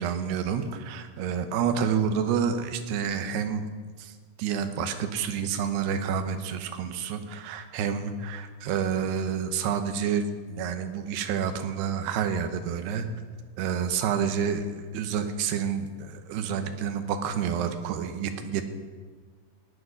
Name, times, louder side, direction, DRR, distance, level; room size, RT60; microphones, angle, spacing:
voice 1, 0.0-3.7 4.0-4.1 4.4-13.1 13.6-18.6, right 7 dB, 85° right, 8 dB, 3.0 m, -29 dB
18.0 x 7.7 x 6.3 m, 1.5 s
omnidirectional pair, 4.7 m